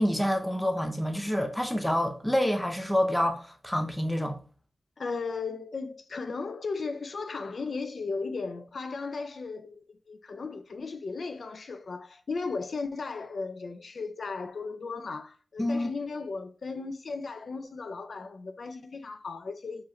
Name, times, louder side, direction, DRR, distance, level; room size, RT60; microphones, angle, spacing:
voice 1, 0.0-4.4 15.6-15.9, equal, 10° left, 0.7 m, -27 dB
voice 2, 5.0-19.8, left 4 dB, 60° left, 0.3 m, -36 dB
4.6 x 3.1 x 2.8 m
wide cardioid pair, 100°, 0 cm